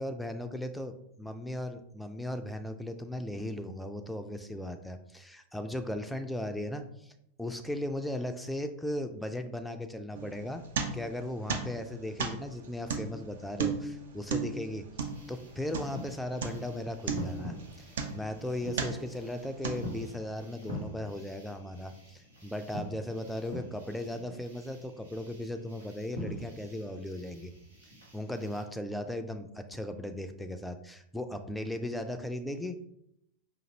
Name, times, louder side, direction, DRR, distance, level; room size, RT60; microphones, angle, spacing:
voice 1, 0.0-7.1 7.4-10.7 10.9-14.9 15.3-27.5 28.1-32.8, left 1 dB, 5° left, 7 dB, 0.4 m, -37 dB
sound 1, 10.1-11.2 11.5-16.1 16.4-16.8 17.1-18.4 18.7-19.2 19.6-20.2, right 5 dB, 60° right, 0.5 m, -34 dB
sound 2, 15.0-28.6, left 1 dB, 75° right, 1.3 m, -45 dB
5.1 x 2.6 x 2.8 m, 0.76 s
figure-of-eight pair, 90°, 0 cm